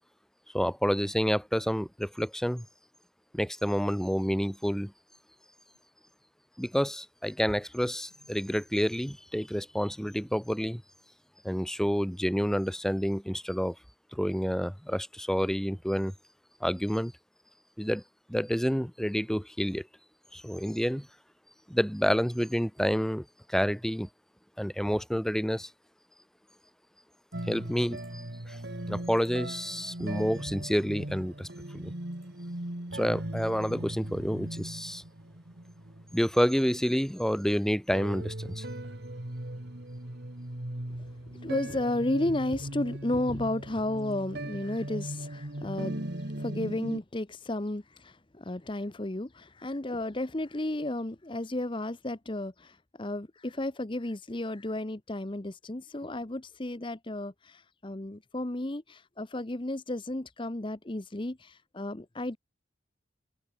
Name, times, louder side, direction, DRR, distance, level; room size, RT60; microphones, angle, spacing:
voice 1, 0.5-2.7 3.3-4.9 6.6-10.8 11.4-13.8 14.1-16.1 16.6-17.1 17.8-18.0 18.3-19.9 20.3-21.1 21.7-24.1 24.6-25.7 27.5-28.6 28.8-31.5 31.7-31.9 32.9-35.0 36.1-38.7, equal, 5° left, 1.7 m, -29 dB
sound 1, 27.3-37.6 37.9-47.0, right 1 dB, 55° right, 2.3 m, -39 dB
voice 2, 40.9-62.4, left 1 dB, 25° left, 0.9 m, -33 dB
head